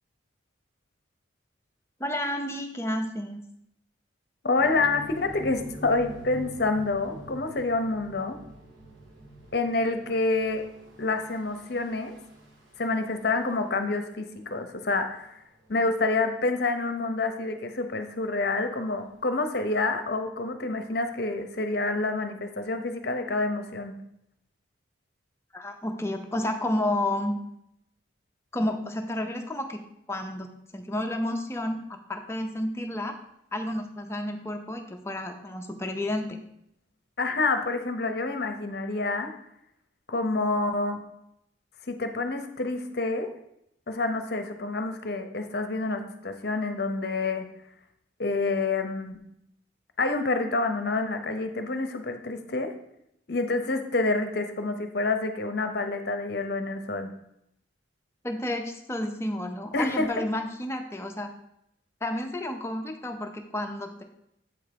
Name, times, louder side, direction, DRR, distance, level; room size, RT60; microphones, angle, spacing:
voice 1, 2.0-3.4 25.5-27.3 28.5-29.8 30.1-31.8 32.1-33.1 33.5-36.4 58.2-61.3 62.0-64.0, left 1 dB, 15° left, 4 dB, 0.5 m, -31 dB
voice 2, 4.4-8.4 9.5-10.7 11.0-12.2 12.8-15.4 15.7-23.9 37.2-39.3 40.1-41.0 41.9-43.3 43.9-47.5 48.2-49.2 50.0-52.7 53.3-57.1 59.7-60.2, left 3 dB, 50° left, 7 dB, 0.7 m, -28 dB
sound 1, 4.6-16.1 16.5-16.8 17.2-17.3 18.3-18.4 19.1-19.2, right 1 dB, 80° right, 1.6 m, -46 dB
7.9 x 3.5 x 5.1 m, 0.78 s
head